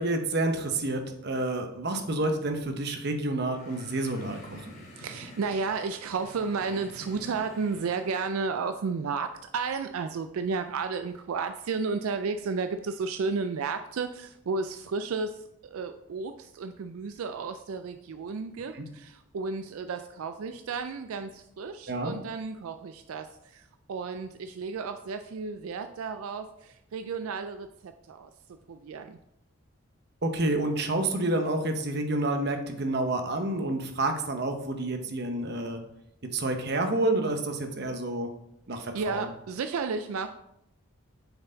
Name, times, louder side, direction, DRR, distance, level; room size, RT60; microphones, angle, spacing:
voice 1, 0.0-4.8 21.9-22.1 30.2-35.8 36.3-38.3 38.7-39.3, right 2 dB, 50° right, 5 dB, 0.8 m, -29 dB
sound 1, 3.4-8.4, equal, 50° left, 2.4 m, -49 dB
voice 2, 5.0-28.3 28.7-29.2 38.7-40.3, right 4 dB, 85° right, 8 dB, 0.4 m, -33 dB
6.6 x 4.5 x 3.9 m, 0.78 s
head